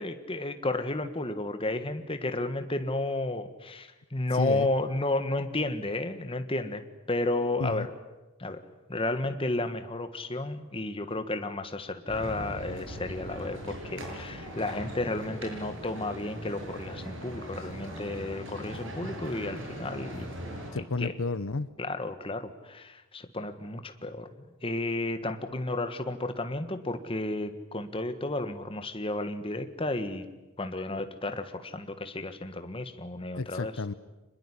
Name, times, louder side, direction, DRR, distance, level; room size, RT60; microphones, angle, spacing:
voice 1, 0.0-7.9 8.4-8.6 8.9-20.3 20.7-21.1 21.8-24.3 24.6-30.3 30.6-33.7, left 2 dB, 25° left, 9 dB, 1.5 m, -32 dB
voice 2, 4.3-4.7 7.6-7.9 20.7-21.7 33.3-33.9, left 3 dB, 65° left, 14 dB, 0.8 m, -31 dB
sound 1, 12.1-20.7, equal, 55° right, 7.7 m, -40 dB
25.5 x 21.5 x 9.9 m, 1.1 s
head